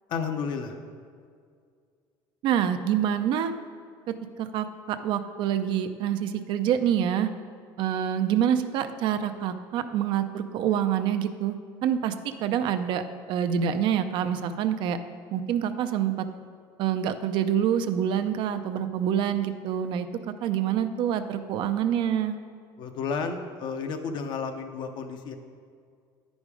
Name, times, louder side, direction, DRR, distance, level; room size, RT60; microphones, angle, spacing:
voice 1, 0.1-0.8 22.8-25.4, left 5 dB, 55° left, 6 dB, 0.7 m, -32 dB
voice 2, 2.4-3.5 4.4-7.3 7.8-13.0 13.3-15.0 15.3-16.3 16.8-22.4, right 9 dB, 60° right, 9 dB, 0.5 m, -26 dB
9.8 x 5.2 x 4.8 m, 2.1 s
cardioid pair, 140°, 9 cm